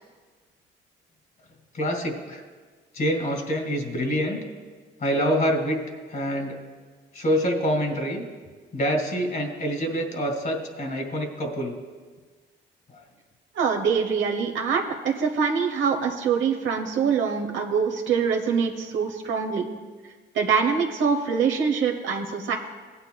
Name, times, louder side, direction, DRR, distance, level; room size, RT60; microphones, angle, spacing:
voice 1, 1.7-2.4 2.9-4.4 5.0-5.8 6.1-6.6 7.1-8.2 8.7-11.7 12.9-13.0, equal, 45° left, 3 dB, 2.0 m, -26 dB
voice 2, 13.5-19.6 20.3-22.5, right 6 dB, 75° right, 3 dB, 1.0 m, -24 dB
16.5 x 9.5 x 2.3 m, 1.4 s
cardioid pair, 90°, 20 cm